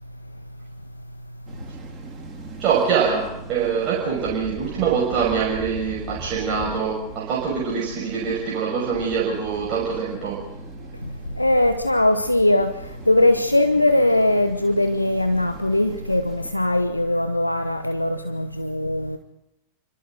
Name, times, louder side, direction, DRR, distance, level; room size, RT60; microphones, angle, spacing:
sound 1, 1.5-16.5, right 4 dB, 20° right, 4.1 m, -42 dB
voice 1, 2.6-10.4, right 6 dB, 40° right, -2 dB, 6.2 m, -24 dB
voice 2, 11.4-12.7 13.1-19.2, left 1 dB, 85° left, 9 dB, 1.1 m, -20 dB
28.5 x 25.5 x 3.9 m, 0.85 s
figure-of-eight pair, 90°, 0 cm